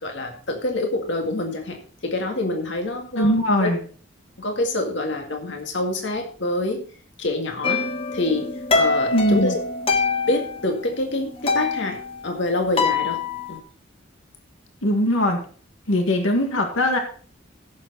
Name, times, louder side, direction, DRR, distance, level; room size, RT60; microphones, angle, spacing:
voice 1, 0.0-3.3 3.6-3.7 4.4-6.8 7.2-7.8 8.1-9.6 10.3-13.2 13.5-13.6, left 2 dB, 65° left, 3 dB, 1.9 m, -26 dB
voice 2, 3.1-3.8 9.1-9.6 14.8-15.4 15.9-17.0, left 1 dB, 85° left, 3 dB, 1.9 m, -20 dB
sound 1, 7.6-10.9 11.2-13.6, left 4 dB, 30° left, 1.0 m, -24 dB
15.5 x 7.0 x 4.0 m, 0.42 s
head